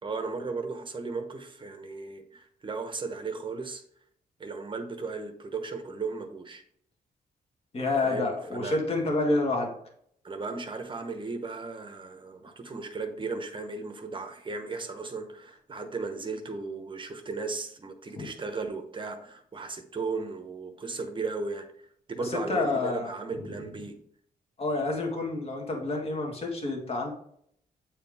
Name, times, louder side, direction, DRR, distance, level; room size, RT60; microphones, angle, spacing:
voice 1, 0.0-3.8 4.4-6.6 8.0-8.3 8.5-8.8 10.2-21.7 22.1-24.0, right 4 dB, 30° right, 6 dB, 1.0 m, -36 dB
voice 2, 7.7-9.7 18.2-18.3 22.2-23.6 24.6-27.1, left 2 dB, 35° left, 1 dB, 1.8 m, -29 dB
8.8 x 4.4 x 3.5 m, 0.66 s
cardioid pair, 125°, 16 cm